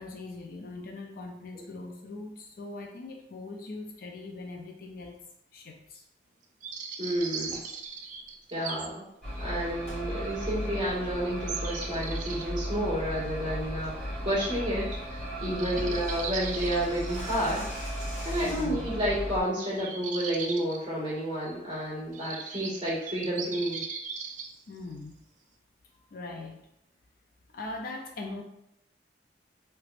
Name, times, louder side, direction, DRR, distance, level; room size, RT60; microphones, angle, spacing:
voice 1, 0.0-5.2 5.5-6.0 15.6-15.9 18.4-18.9 24.7-25.2 26.1-26.6 27.5-28.4, left 2 dB, 55° left, 2 dB, 0.4 m, -41 dB
sound 1, 6.6-8.9 9.4-9.5 10.3-10.4 11.5-12.4 14.8-14.9 15.2-15.3 15.5-17.4 19.7-20.8 21.5-21.6 22.1-24.5, right 5 dB, 45° right, 0.4 m, -38 dB
voice 2, 7.0-7.6 8.5-9.0 9.4-17.7 18.2-23.8, equal, 25° right, -9 dB, 1.5 m, -30 dB
sound 2, 7.5-7.8 9.8-10.1 10.5-10.6 11.2-11.4 11.8-12.1 12.5-12.8 13.1-13.2 13.6-13.9 14.2-14.3 14.6-14.7 14.9-15.0 15.3-18.9, equal, 35° left, 1.5 m, -46 dB
sound 3, 9.2-19.4, equal, 5° left, 1.1 m, -35 dB
3.3 x 3.1 x 2.4 m, 0.80 s
head